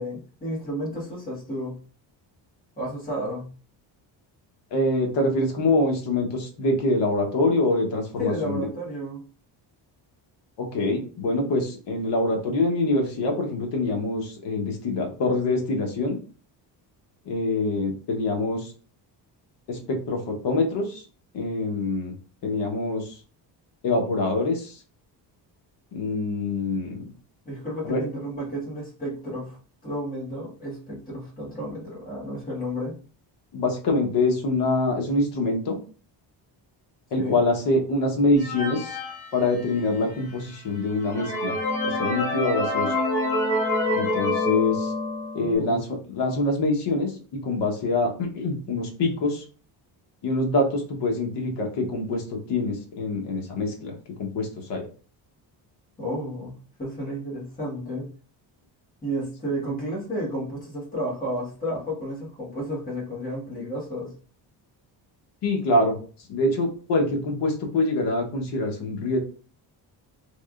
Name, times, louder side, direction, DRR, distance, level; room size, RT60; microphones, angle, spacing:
voice 1, 0.0-1.7 2.8-3.5 8.2-9.2 27.4-32.9 37.2-37.4 45.4-45.9 56.0-58.1 59.0-64.1, equal, 20° left, -5 dB, 1.7 m, -32 dB
voice 2, 4.7-8.6 10.6-16.2 17.2-18.7 19.7-21.0 21.3-22.1 22.4-23.1 23.8-24.8 25.9-27.0 27.8-28.0 33.5-35.8 37.1-39.0 39.3-41.6 41.8-42.9 43.9-44.9 45.3-47.1 47.4-49.4 50.2-54.8 65.4-66.0 66.3-69.2, left 2 dB, 70° left, 1 dB, 1.1 m, -25 dB
sound 1, 38.4-40.0 40.6-40.7 41.0-45.6, left 2 dB, 40° left, 1.6 m, -27 dB
3.5 x 3.2 x 2.4 m, 0.38 s
cardioid pair, 170°, 43 cm